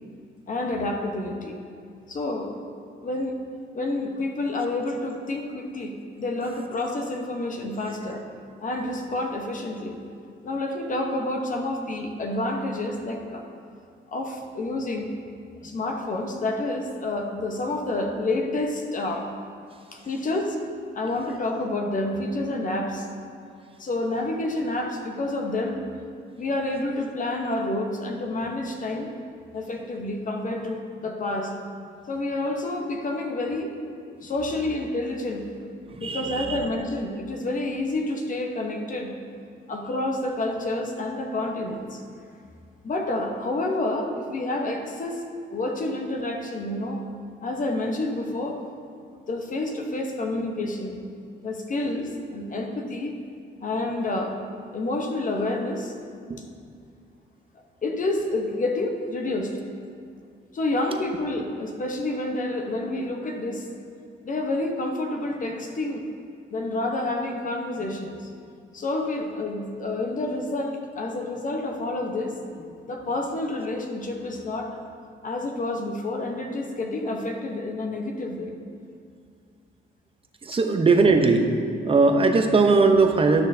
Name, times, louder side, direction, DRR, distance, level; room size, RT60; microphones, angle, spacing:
voice 1, 0.5-1.6 2.1-2.5 3.0-3.4 3.7-8.3 8.6-10.0 10.4-13.5 14.1-15.1 15.6-19.3 19.9-20.6 20.9-23.1 23.8-25.8 26.4-29.1 29.5-31.5 32.1-33.7 34.2-35.5 36.0-39.2 39.7-42.0 42.8-45.2 45.5-47.0 47.4-48.6 49.3-51.1 51.4-53.1 53.6-54.4 54.7-55.9 57.8-59.6 60.5-63.7 64.2-66.0 66.5-68.3 68.7-74.8 75.2-78.5, left 2 dB, 40° left, 3 dB, 1.0 m, -29 dB
voice 2, 35.9-36.6 56.3-56.4 80.4-81.5 81.8-83.5, right 3 dB, 25° right, 5 dB, 0.7 m, -19 dB
11.5 x 6.3 x 2.7 m, 2.3 s
cardioid pair, 90°, 20 cm